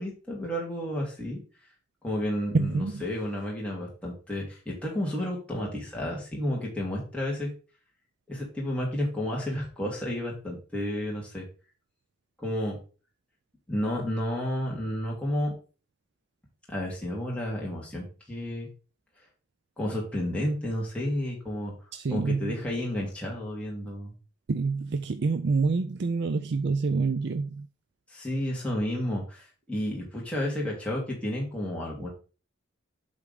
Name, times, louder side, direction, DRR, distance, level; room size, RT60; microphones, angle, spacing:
voice 1, 0.0-1.4 2.0-7.5 8.3-11.5 12.4-12.8 13.7-15.5 16.7-18.7 19.8-21.7 22.1-24.1 28.1-32.1, left 1 dB, 5° left, 2.3 m, -31 dB
voice 2, 2.5-3.1 21.9-22.6 24.5-27.7, right 4 dB, 55° right, 0.4 m, -27 dB
8.3 x 3.6 x 5.2 m
head